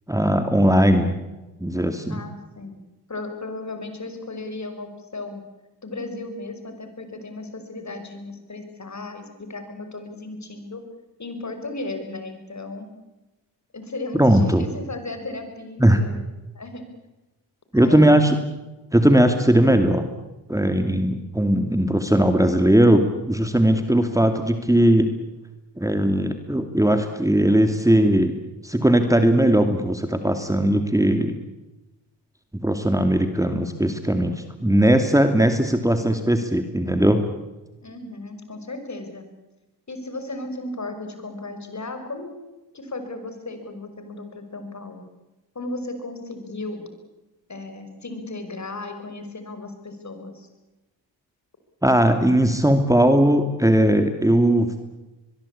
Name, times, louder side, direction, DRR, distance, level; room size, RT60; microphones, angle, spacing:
voice 1, 0.1-1.2 1.6-2.2 14.1-14.7 15.8-16.0 17.7-18.4 18.9-20.1 20.5-25.1 25.8-28.4 28.6-31.4 32.6-37.2 51.8-54.7, right 1 dB, 5° right, 7 dB, 2.6 m, -18 dB
voice 2, 2.1-2.8 3.1-5.4 5.8-10.8 11.2-12.9 13.7-16.3 16.5-16.9 17.7-18.2 37.8-39.3 39.9-42.4 42.7-45.0 45.5-46.9 47.5-50.5, left 2 dB, 40° left, 7 dB, 6.0 m, -35 dB
23.0 x 22.5 x 8.7 m, 1.1 s
supercardioid pair, 50°, 44 cm